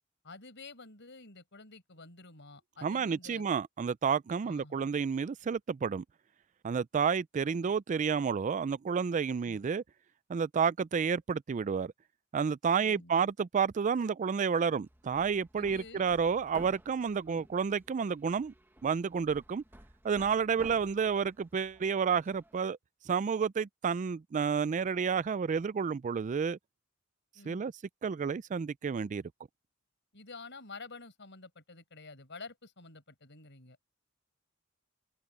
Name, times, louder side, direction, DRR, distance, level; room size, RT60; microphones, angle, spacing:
voice 1, 0.2-3.4 4.4-4.8 7.6-7.7 9.4-9.6 12.8-13.2 15.6-16.1 17.3-17.4 20.6-20.8 27.3-27.6 30.1-33.8, left 3 dB, 60° left, 5.7 m, -50 dB
voice 2, 2.8-6.0 6.6-9.8 10.3-11.9 12.3-18.5 18.8-19.6 20.0-22.8 23.1-26.6 27.5-27.7 28.0-29.2, right 6 dB, 35° right, 0.3 m, -30 dB
Hammer, 14.8-22.7, right 1 dB, 10° right, 1.4 m, -55 dB
head